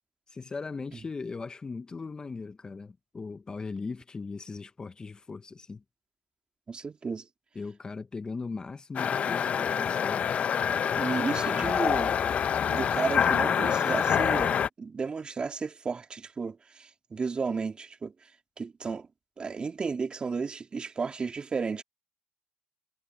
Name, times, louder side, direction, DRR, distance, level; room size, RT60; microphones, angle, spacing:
voice 1, 0.3-5.8 7.5-10.3 11.4-11.8, left 4 dB, 25° left, 1.2 m, -39 dB
voice 2, 6.7-7.3 11.0-12.2 12.6-18.1 18.6-19.1 19.4-21.8, right 5 dB, 30° right, 2.5 m, -33 dB
sound 1, 9.0-14.7, left 8 dB, 45° left, 0.8 m, -26 dB
supercardioid pair, 80°, 3 cm